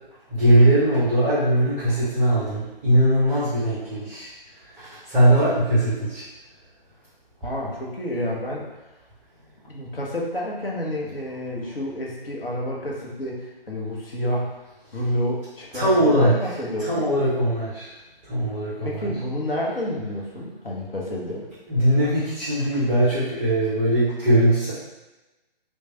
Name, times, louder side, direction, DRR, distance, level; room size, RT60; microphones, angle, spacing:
voice 1, 0.3-4.3 4.7-6.2 15.7-17.9 18.2-19.1 21.7-24.7, right 1 dB, 5° right, -13 dB, 0.4 m, -20 dB
voice 2, 7.4-8.6 9.7-14.5 14.9-17.0 18.8-21.4, equal, 70° left, -3 dB, 0.9 m, -29 dB
3.0 x 2.2 x 2.8 m, 1.1 s
figure-of-eight pair, 135°, 29 cm